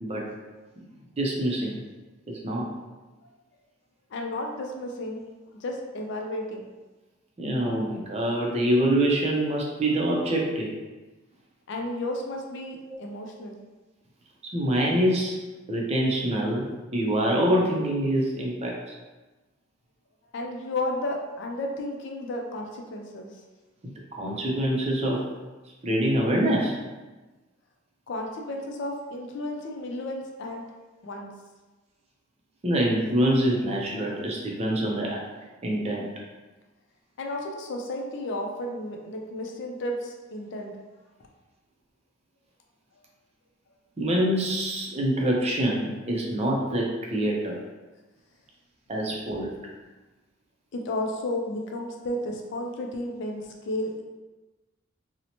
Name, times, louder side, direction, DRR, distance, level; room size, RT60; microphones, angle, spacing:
voice 1, 1.2-1.8 2.3-2.7 7.4-10.7 12.9-13.0 14.4-15.4 15.7-18.9 24.1-25.2 25.8-26.7 32.6-35.2 35.6-36.1 44.0-47.6 48.9-49.5, right 1 dB, 30° right, -2 dB, 0.5 m, -25 dB
voice 2, 4.1-5.2 5.6-6.6 11.7-13.6 20.3-23.3 28.1-30.6 31.0-31.3 37.2-40.8 50.7-54.0, left 1 dB, 60° left, 1 dB, 0.4 m, -33 dB
2.7 x 2.1 x 2.8 m, 1.2 s
head